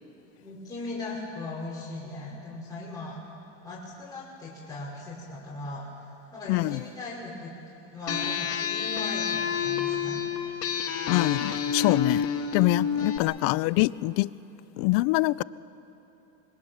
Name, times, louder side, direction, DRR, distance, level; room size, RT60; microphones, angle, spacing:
voice 1, 0.4-3.2 3.6-5.9 6.3-7.5 7.9-10.2 12.7-12.9, left 2 dB, 10° left, -8 dB, 5.5 m, -38 dB
voice 2, 6.5-6.8 11.1-14.3 14.8-15.4, left 21 dB, 65° left, 19 dB, 0.6 m, -25 dB
sound 1, 8.1-13.2, left 7 dB, 40° left, 1.9 m, -29 dB
26.0 x 21.5 x 7.3 m, 2.9 s
supercardioid pair, 110°, 38 cm